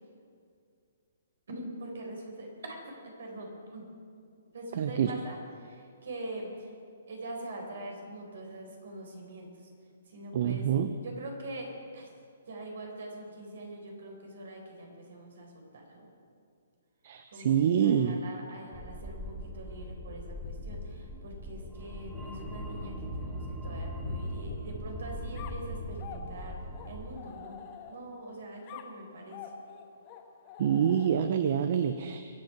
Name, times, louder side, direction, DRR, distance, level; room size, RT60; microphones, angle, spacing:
voice 1, 1.5-3.9 4.5-6.8 7.1-9.7 10.1-10.7 11.0-12.1 12.5-16.1 17.3-27.6 27.9-29.5 31.7-31.8, right 1 dB, 70° right, 1 dB, 4.4 m, -43 dB
voice 2, 4.8-5.1 10.3-10.9 17.0-18.2 30.6-32.3, right 8 dB, 55° right, 9 dB, 0.7 m, -26 dB
sound 1, 18.7-27.1, equal, 10° right, 2.5 m, -40 dB
Tap, 20.4-25.7 28.3-28.4, left 4 dB, 65° left, 1.6 m, -49 dB
sound 2, 25.3-28.2 28.7-31.5, left 7 dB, 35° left, 1.5 m, -47 dB
23.0 x 8.0 x 6.0 m, 2.3 s
hypercardioid pair, 145°, 0 cm